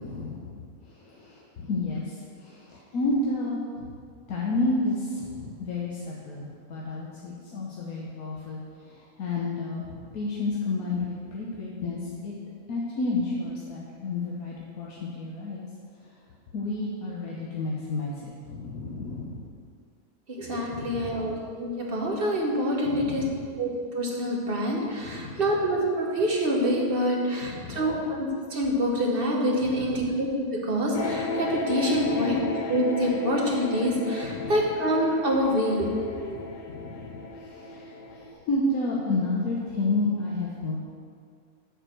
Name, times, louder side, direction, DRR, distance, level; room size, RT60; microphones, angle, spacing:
voice 1, 0.0-3.9 4.3-12.3 12.7-15.6 16.0-16.1 16.5-19.5 20.7-21.4 22.8-23.5 25.0-25.6 27.4-28.0 29.6-30.1 31.9-32.5 34.2-34.7 36.6-40.8, left 2 dB, 85° left, -4 dB, 1.4 m, -31 dB
voice 2, 20.3-21.3 21.6-23.2 23.6-32.4 32.7-35.9 36.2-36.4, equal, 45° right, -1 dB, 1.2 m, -26 dB
sound 1, 30.9-38.3, left 3 dB, 50° left, 0.5 m, -34 dB
7.7 x 4.6 x 6.3 m, 2.1 s
omnidirectional pair, 1.5 m